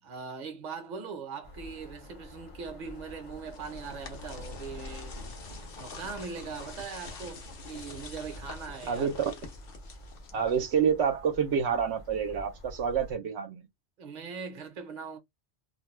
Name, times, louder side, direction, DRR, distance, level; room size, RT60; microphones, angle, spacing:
voice 1, 0.0-5.2 5.8-9.1 14.0-15.2, right 5 dB, 45° right, 0.8 m, -40 dB
sound 1, 1.4-13.2, left 1 dB, 40° left, 0.5 m, -47 dB
sound 2, 3.1-10.9, left 4 dB, 60° left, 0.9 m, -47 dB
voice 2, 10.3-13.7, right 7 dB, 75° right, 0.9 m, -28 dB
2.5 x 2.2 x 3.1 m
omnidirectional pair, 1.2 m